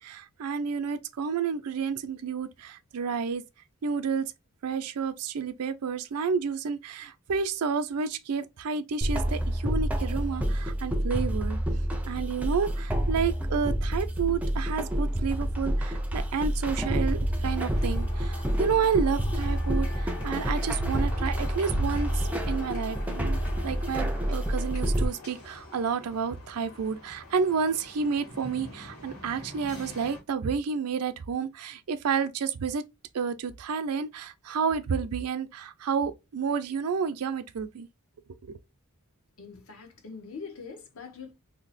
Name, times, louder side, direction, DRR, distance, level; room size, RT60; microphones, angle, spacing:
voice 1, 0.0-3.4 3.8-4.3 4.6-11.6 12.0-32.8 33.1-37.9 38.4-38.6, right 6 dB, 90° right, 0.4 m, -30 dB
sound 1, 9.0-25.1, equal, 5° right, 0.3 m, -28 dB
sound 2, 17.5-30.2, left 3 dB, 90° left, 1.7 m, -44 dB
voice 2, 39.4-41.3, left 5 dB, 70° left, 0.7 m, -43 dB
2.8 x 2.0 x 4.0 m
head